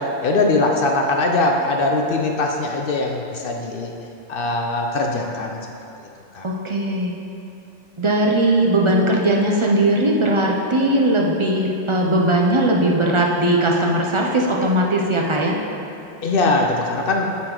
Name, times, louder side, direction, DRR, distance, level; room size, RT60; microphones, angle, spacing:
voice 1, 0.0-3.9 4.3-5.6 6.3-6.5 16.2-17.4, left 2 dB, 60° left, 2 dB, 0.7 m, -21 dB
voice 2, 6.4-7.1 8.0-15.6, right 1 dB, 40° right, -1 dB, 0.5 m, -19 dB
8.8 x 4.2 x 3.8 m, 2.9 s
omnidirectional pair, 1.2 m